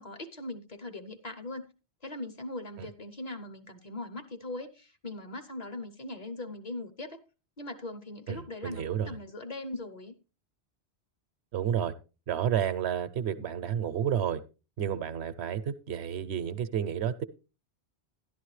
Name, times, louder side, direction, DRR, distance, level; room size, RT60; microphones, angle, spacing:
voice 1, 0.0-1.7 2.0-7.2 7.6-10.2, left 2 dB, 40° left, 0.8 m, -40 dB
voice 2, 8.3-9.2 11.5-11.9 12.3-14.4 14.8-17.2, right 9 dB, 75° right, 0.9 m, -31 dB
12.0 x 11.0 x 3.2 m
omnidirectional pair, 1.1 m